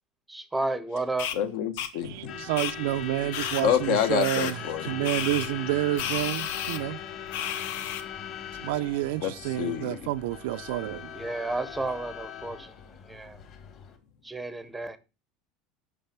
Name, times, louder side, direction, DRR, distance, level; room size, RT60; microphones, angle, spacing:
voice 1, 0.3-1.3 11.1-13.4 14.2-15.0, right 2 dB, 5° right, 0.7 m, -32 dB
sound 1, 1.2-1.4 1.8-1.9 2.6-2.7 3.3-3.6 4.2-4.5 5.0-5.5 6.0-6.8 7.3-8.0, left 10 dB, 85° left, 1.2 m, -32 dB
voice 2, 1.3-2.4 3.6-5.1 9.2-10.0, left 9 dB, 60° left, 1.0 m, -28 dB
Truck / Alarm, 2.0-14.0, left 8 dB, 35° left, 1.8 m, -40 dB
voice 3, 2.0-4.6 4.8-7.0 8.5-11.1, right 15 dB, 75° right, 0.4 m, -29 dB
8.6 x 6.0 x 5.8 m
cardioid pair, 175°, 0 cm